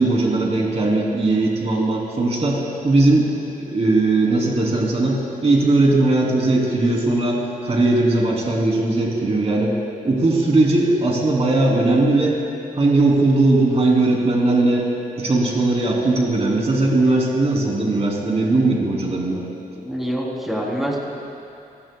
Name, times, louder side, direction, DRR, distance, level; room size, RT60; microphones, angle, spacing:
voice 1, 0.0-3.3 3.6-9.7 10.0-12.4 12.8-14.9 15.2-19.4, right 2 dB, 40° right, -3 dB, 3.4 m, -19 dB
voice 2, 19.8-21.0, equal, ahead, -3 dB, 3.6 m, -25 dB
30.0 x 18.0 x 2.4 m, 2.6 s
wide cardioid pair, 120°, 15 cm